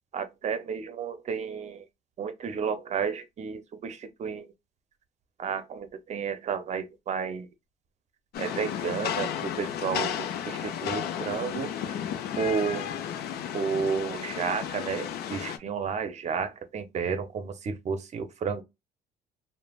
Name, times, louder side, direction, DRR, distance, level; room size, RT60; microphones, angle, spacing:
voice 1, 0.1-1.8 2.2-4.5 5.4-7.5 8.4-11.7 12.4-12.9 13.5-18.6, right 6 dB, 45° right, 0.6 m, -32 dB
Rain, 8.3-15.6, left 9 dB, 70° left, 0.5 m, -33 dB
3.2 x 2.1 x 2.3 m
cardioid pair, 110°, 17 cm